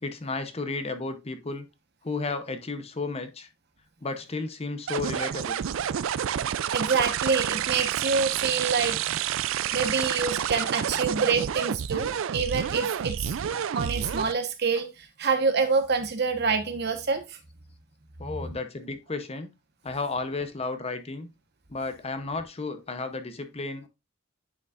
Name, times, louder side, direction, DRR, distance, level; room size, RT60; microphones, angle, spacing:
voice 1, 0.0-1.7 2.0-3.5 4.0-5.6 18.2-19.5 19.8-21.3 21.7-23.9, left 3 dB, 30° left, 0.8 m, -33 dB
sound 1, 4.9-14.3, right 9 dB, 75° right, 0.4 m, -29 dB
voice 2, 6.7-9.2 9.7-13.4 13.7-17.4, right 5 dB, 55° right, 1.1 m, -26 dB
9.6 x 5.1 x 2.5 m
head